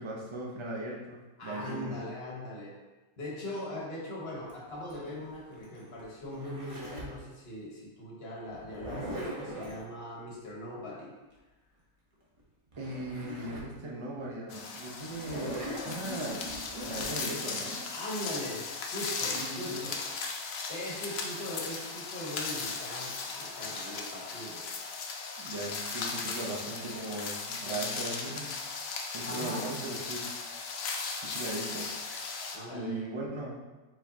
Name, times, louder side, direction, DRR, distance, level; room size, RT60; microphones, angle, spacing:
voice 1, 0.0-2.0 12.8-16.5 16.8-17.8 19.3-19.8 25.4-28.5 29.1-30.3 31.2-31.9 32.7-33.6, right 2 dB, 45° right, -3 dB, 0.3 m, -38 dB
voice 2, 1.4-2.7 3.2-11.1 17.9-20.0 20.7-24.6 29.2-29.7 32.5-33.0, left 1 dB, 45° left, -4 dB, 1.2 m, -40 dB
Zipper (clothing), 4.5-7.2 8.5-9.8 12.4-12.5 12.7-13.7 14.2-14.3 15.1-17.1, equal, 30° right, 0.7 m, -40 dB
sound 1, 14.5-32.6, left 4 dB, 65° left, 0.6 m, -37 dB
4.6 x 4.1 x 2.8 m, 1.2 s
omnidirectional pair, 1.6 m